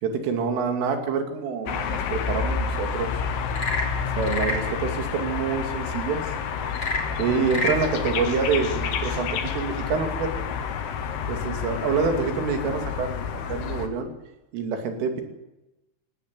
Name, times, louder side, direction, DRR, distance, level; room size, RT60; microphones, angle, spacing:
voice 1, 0.0-3.1 4.2-6.3 7.2-10.3 11.3-14.1 14.5-15.2, right 5 dB, 85° right, 5 dB, 5.2 m, -27 dB
sound 1, 1.7-13.9, left 6 dB, 80° left, 4.1 m, -29 dB
Frog / Percussion / Wood, 3.4-4.7 6.7-7.9, left 2 dB, 30° left, 5.8 m, -28 dB
18.0 x 17.5 x 8.5 m, 0.95 s
omnidirectional pair, 5.6 m